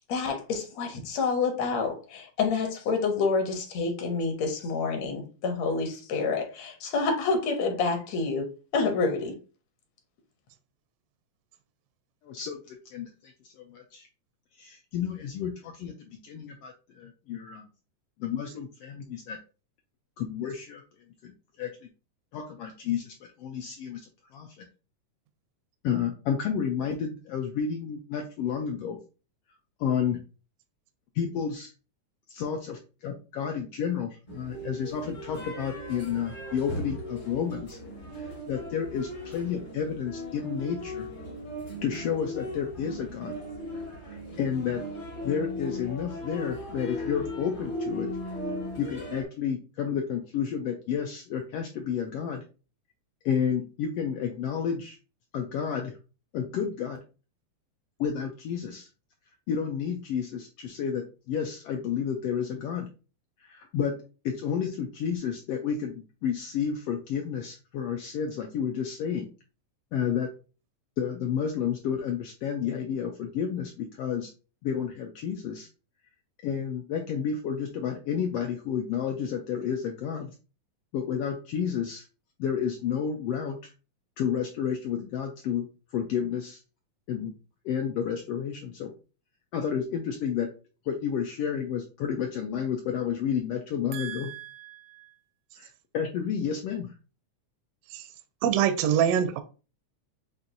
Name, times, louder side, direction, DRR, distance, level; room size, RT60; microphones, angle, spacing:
voice 1, 0.1-9.4, left 4 dB, 70° left, 2.0 m, -28 dB
voice 2, 12.2-14.1 14.6-17.7 18.2-19.4 20.2-20.8 21.2-21.9 22.3-24.7 25.8-29.0 29.8-30.2 31.1-31.7 32.3-37.8 38.1-41.1 41.8-43.4 44.0-44.8 45.2-48.1 48.8-52.4 53.2-55.0 55.3-55.9 56.3-57.0 58.0-58.9 59.5-62.9 63.4-64.0 64.2-69.3 69.9-70.3 71.0-74.3 74.6-75.7 76.4-80.3 80.9-82.0 82.4-83.6 84.2-86.6 87.1-87.3 87.6-88.9 89.5-90.5 90.9-94.3 95.6-96.9, left 7 dB, 90° left, 1.3 m, -31 dB
sound 1, 34.3-49.2, left 1 dB, 55° left, 0.5 m, -37 dB
voice 3, 93.9-95.0 97.9-98.1 98.4-99.4, right 9 dB, 80° right, 1.5 m, -26 dB
7.2 x 2.6 x 2.6 m
omnidirectional pair, 3.3 m